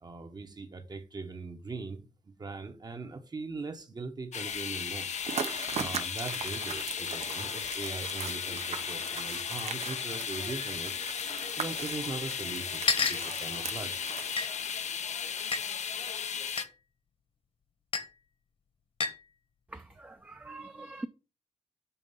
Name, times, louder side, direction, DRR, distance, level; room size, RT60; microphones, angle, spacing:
voice 1, 0.0-5.1 5.7-10.9 11.6-14.0, right 3 dB, 35° right, 0.9 m, -40 dB
sound 1, 4.3-16.6, left 7 dB, 80° left, 0.6 m, -35 dB
sound 2, 5.2-15.0, right 6 dB, 70° right, 0.7 m, -40 dB
sound 3, 11.1-11.2 12.1-12.2 12.9-13.3 14.4-14.5 15.5-15.6 16.6-16.7 17.9-18.1 19.0-19.2, left 5 dB, 55° left, 1.2 m, -29 dB
voice 2, 19.7-21.1, right 2 dB, 15° right, 0.4 m, -43 dB
7.1 x 3.9 x 5.3 m
wide cardioid pair, 135°, 12 cm